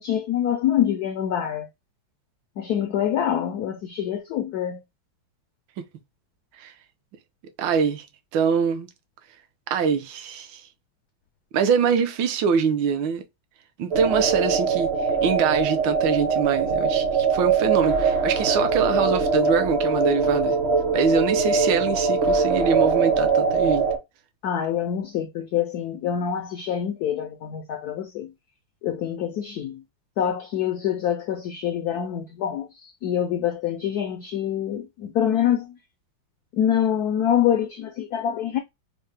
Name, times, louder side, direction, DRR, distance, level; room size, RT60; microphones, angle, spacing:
voice 1, 0.0-1.7 2.6-4.8 24.4-28.3 28.8-29.8 30.2-35.8 36.5-38.6, left 9 dB, 85° left, 0.8 m, -25 dB
voice 2, 7.6-8.1 8.3-8.9 9.7-10.6 11.5-13.2 13.8-14.9 15.2-20.6 20.9-23.8, right 6 dB, 75° right, 1.3 m, -24 dB
sound 1, 13.9-24.0, right 4 dB, 50° right, 0.7 m, -22 dB
4.6 x 2.1 x 3.2 m
omnidirectional pair, 2.2 m